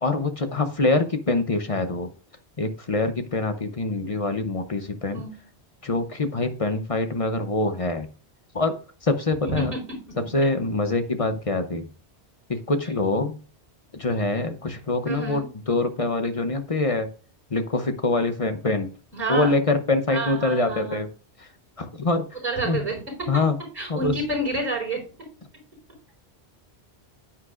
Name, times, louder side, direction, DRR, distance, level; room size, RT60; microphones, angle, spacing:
voice 1, 0.0-2.1 2.6-5.2 5.8-8.1 8.5-9.7 10.3-11.9 12.5-13.4 13.9-17.1 17.5-18.9 19.3-21.1 21.4-21.5 21.8-22.4 22.6-22.9 23.3-23.6 23.9-24.1, left 2 dB, 35° left, 8 dB, 0.8 m, -25 dB
voice 2, 9.4-9.8 15.0-15.5 19.1-19.6 20.1-21.0 22.4-23.5 23.7-25.0, right 2 dB, 40° right, -3 dB, 4.5 m, -29 dB
9.6 x 8.6 x 2.5 m, 0.38 s
omnidirectional pair, 1.1 m